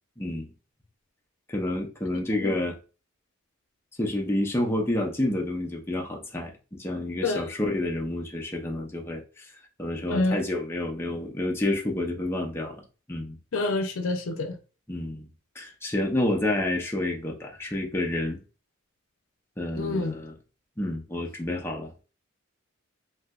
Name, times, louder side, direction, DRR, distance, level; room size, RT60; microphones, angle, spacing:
voice 1, 0.2-0.5 1.5-2.8 4.0-9.5 9.8-12.8 13.1-13.4 14.9-15.3 15.6-18.4 19.6-20.3 20.8-21.9, left 1 dB, 10° left, 0.5 m, -29 dB
voice 2, 2.1-2.5 7.2-7.5 10.1-10.4 13.5-14.6 19.8-20.2, left 2 dB, 80° left, 0.6 m, -27 dB
3.3 x 2.7 x 2.3 m
head